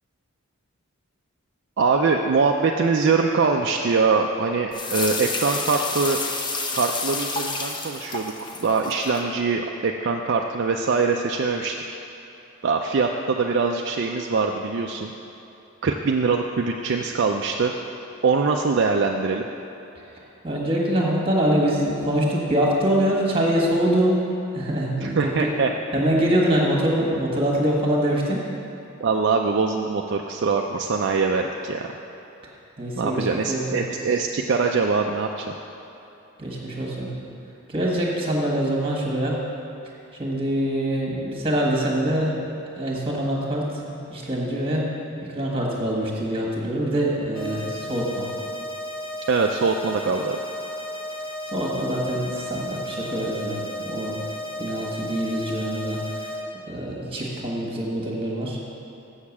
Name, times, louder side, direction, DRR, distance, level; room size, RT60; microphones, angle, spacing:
voice 1, 1.8-6.2 6.7-8.3 8.6-12.0 12.6-15.1 15.8-17.7 18.2-19.4 25.0-25.7 29.0-31.9 32.9-35.5 49.3-50.4, right 4 dB, 55° right, 1 dB, 0.4 m, -23 dB
sound 1, 4.7-9.2, left 3 dB, 20° left, 0.5 m, -29 dB
voice 2, 20.4-24.2 24.5-25.6 25.9-28.4 32.8-33.8 36.4-37.2 37.7-39.4 40.1-42.4 42.8-44.8 45.3-48.3 51.5-54.1 54.6-56.3 56.7-58.6, right 1 dB, 25° right, -2 dB, 1.4 m, -24 dB
sound 2, 47.3-56.3, left 1 dB, 80° left, 2.1 m, -34 dB
7.2 x 6.7 x 7.1 m, 3.0 s
head